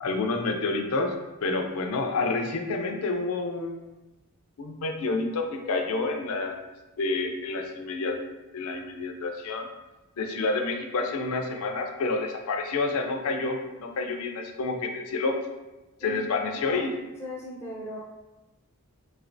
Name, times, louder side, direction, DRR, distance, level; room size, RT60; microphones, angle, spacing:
voice 1, 0.0-1.1 1.4-3.9 4.6-6.6 7.0-8.2 8.5-9.7 10.2-15.4 16.0-16.9, left 3 dB, 70° left, 4 dB, 0.4 m, -29 dB
voice 2, 16.0-16.9 17.2-18.0, left 1 dB, 10° left, -5 dB, 0.5 m, -38 dB
3.2 x 2.9 x 2.6 m, 1.1 s
head